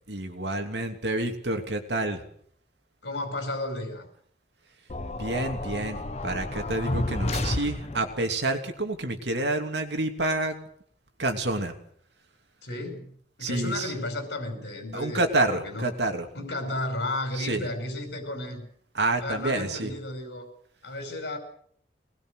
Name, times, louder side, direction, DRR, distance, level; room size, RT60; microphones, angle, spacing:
voice 1, 0.1-2.2 5.2-10.5 11.2-11.7 13.4-13.9 14.9-16.3 17.4-17.7 18.9-19.9, right 2 dB, 70° right, 5 dB, 2.9 m, -28 dB
voice 2, 3.0-4.1 12.6-13.1 13.4-15.9 16.3-18.7 19.2-20.5 20.8-21.4, left 2 dB, 75° left, 4 dB, 5.3 m, -33 dB
sound 1, 4.9-8.2, left 1 dB, 40° left, 1.2 m, -31 dB
23.5 x 20.0 x 6.5 m, 0.62 s
head